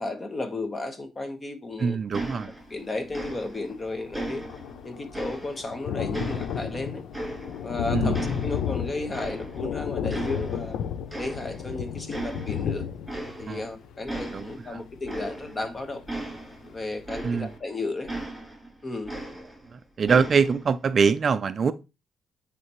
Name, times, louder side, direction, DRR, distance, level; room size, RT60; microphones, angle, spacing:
voice 1, 0.0-2.0 2.7-4.4 4.8-7.0 7.6-10.8 11.2-12.9 13.4-16.0 16.7-18.1 18.8-19.2, left 2 dB, 30° left, 1.3 m, -33 dB
voice 2, 1.8-2.5 7.9-8.2 13.5-13.7 14.3-14.8 17.2-17.5 19.7-21.7, right 5 dB, 45° right, 0.4 m, -24 dB
sound 1, 2.1-2.8 3.1-3.8 4.1-5.8 6.1-7.8 8.1-9.7 10.1-10.8 11.1-11.7 12.1-12.7 13.0-13.7 14.1-17.7 18.1-19.7 20.1-20.7, right 1 dB, 10° right, 2.9 m, -37 dB
Thunder, 3.4-3.5 3.7-16.3 16.8-16.9 17.2-17.3, left 8 dB, 80° left, 0.5 m, -33 dB
9.3 x 3.4 x 3.1 m
cardioid pair, 90°, 0 cm